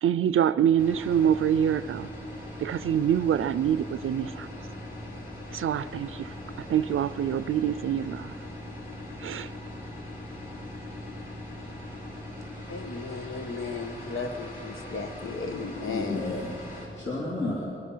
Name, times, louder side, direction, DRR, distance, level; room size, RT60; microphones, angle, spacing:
voice 1, 0.0-2.1 2.6-4.5 5.5-6.3 6.7-8.3 9.2-9.5, right 9 dB, 80° right, 16 dB, 0.5 m, -25 dB
sound 1, 0.8-16.9, left 1 dB, 40° left, 5.1 m, -40 dB
voice 2, 12.7-16.4, left 4 dB, 85° left, 7 dB, 1.3 m, -35 dB
voice 3, 15.9-17.7, left 2 dB, 65° left, -5 dB, 3.6 m, -32 dB
23.0 x 21.0 x 5.6 m, 2.8 s
wide cardioid pair, 160°, 21 cm